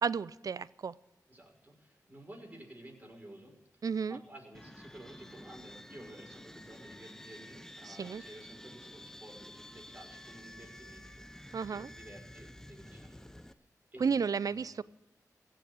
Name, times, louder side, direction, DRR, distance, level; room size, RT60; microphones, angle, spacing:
voice 1, 0.0-0.9 3.8-4.2 7.8-8.2 11.5-11.9 14.0-14.8, right 6 dB, 60° right, 20 dB, 0.4 m, -32 dB
voice 2, 1.3-3.5 4.1-13.5 13.9-14.8, right 1 dB, 25° right, 0 dB, 5.8 m, -53 dB
sound 1, 4.5-13.5, left 1 dB, 5° left, 0.7 m, -51 dB
16.5 x 6.9 x 9.8 m, 1.0 s
cardioid pair, 50°, 7 cm